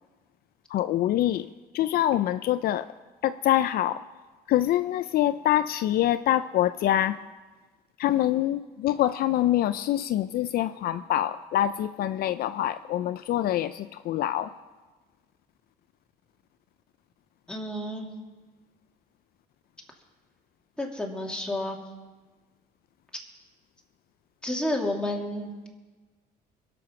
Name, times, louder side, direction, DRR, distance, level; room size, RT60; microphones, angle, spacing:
voice 1, 0.7-1.5 1.7-2.9 3.2-4.0 4.5-7.2 8.0-14.5, left 12 dB, 65° left, 12 dB, 0.4 m, -25 dB
voice 2, 17.5-18.1 20.8-21.8 24.4-25.7, left 1 dB, 5° left, -1 dB, 2.5 m, -30 dB
22.5 x 7.7 x 5.8 m, 1.3 s
cardioid pair, 110°, 17 cm